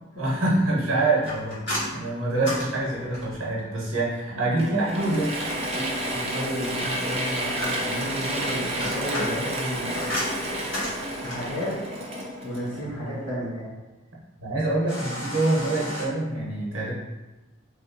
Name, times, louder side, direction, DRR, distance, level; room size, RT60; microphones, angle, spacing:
voice 1, 0.2-1.6 1.9-5.3 5.7-6.0 12.9-13.0 14.4-16.9, right 2 dB, 85° right, -5 dB, 0.9 m, -25 dB
sound 1, 1.2-3.5 6.8-8.1 8.6-11.6 14.9-16.1, left 1 dB, 55° left, 1.4 m, -33 dB
Mechanisms / Drill, 4.6-13.2, right 1 dB, 30° right, 0.4 m, -30 dB
voice 2, 6.1-10.2 11.2-11.7 12.4-13.8, equal, 90° left, -9 dB, 0.9 m, -32 dB
3.3 x 2.8 x 2.5 m, 1.1 s
head